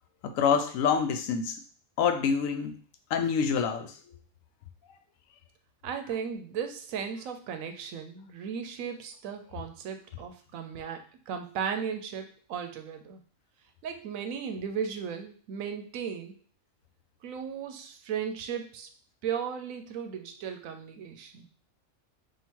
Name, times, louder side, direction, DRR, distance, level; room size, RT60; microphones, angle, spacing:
voice 1, 0.2-1.6 2.0-2.8 3.1-3.9, left 6 dB, 80° left, 7 dB, 1.0 m, -26 dB
voice 2, 5.8-13.2 13.8-16.3 17.2-18.9 19.2-21.5, right 7 dB, 85° right, 6 dB, 1.0 m, -36 dB
3.7 x 2.5 x 4.4 m, 0.41 s
omnidirectional pair, 1.4 m